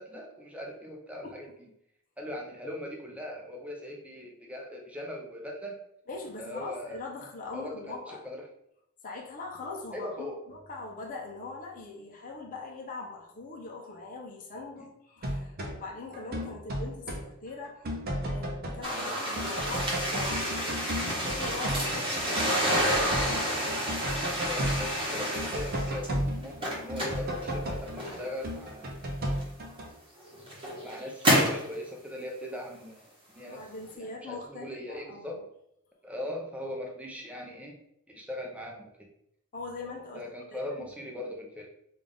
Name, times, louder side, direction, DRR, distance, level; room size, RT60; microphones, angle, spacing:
voice 1, 0.0-1.7 2.2-5.8 6.4-7.0 7.5-8.4 9.9-10.4 14.8-14.9 18.9-19.2 24.3-29.1 30.8-33.6 33.9-35.4 36.0-37.8 38.1-39.1 40.1-41.7, left 1 dB, 5° right, 0 dB, 0.6 m, -40 dB
voice 2, 6.1-8.2 9.0-23.5 33.5-35.4 39.5-40.2 40.5-40.9, left 3 dB, 40° left, -1 dB, 0.7 m, -42 dB
sound 1, 15.2-15.8 16.1-17.3 17.6-19.1 19.4-29.9, equal, 45° right, 0.6 m, -34 dB
sound 2, 18.8-26.1 26.4-28.4 29.4-29.5 30.2-31.7, equal, 25° right, 1.0 m, -29 dB
3.8 x 2.4 x 3.4 m, 0.76 s
head